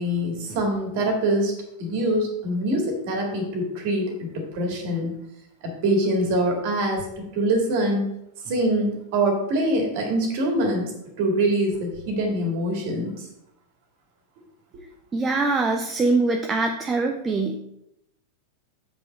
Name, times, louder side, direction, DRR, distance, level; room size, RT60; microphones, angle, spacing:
voice 1, 0.0-1.5 1.8-5.2 5.6-7.1 7.3-8.1 8.4-10.9 11.2-13.3, right 1 dB, 50° right, 2 dB, 2.0 m, -24 dB
voice 2, 15.1-17.6, right 3 dB, 20° right, 3 dB, 0.6 m, -23 dB
7.5 x 5.3 x 4.2 m, 0.80 s
figure-of-eight pair, 90°, 0 cm